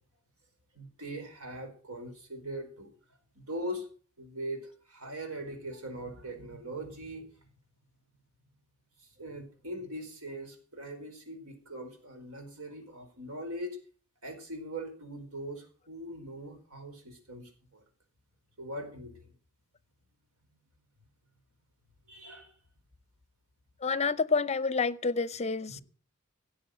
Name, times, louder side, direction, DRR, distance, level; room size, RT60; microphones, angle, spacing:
voice 1, 0.7-2.9 3.3-3.9 4.2-7.3 9.2-13.8 14.2-17.8 18.6-19.3 22.1-22.5 25.7-25.8, right 1 dB, 85° right, 4.5 m, -41 dB
voice 2, 23.8-25.8, left 4 dB, 30° left, 0.6 m, -28 dB
17.0 x 7.6 x 7.7 m
head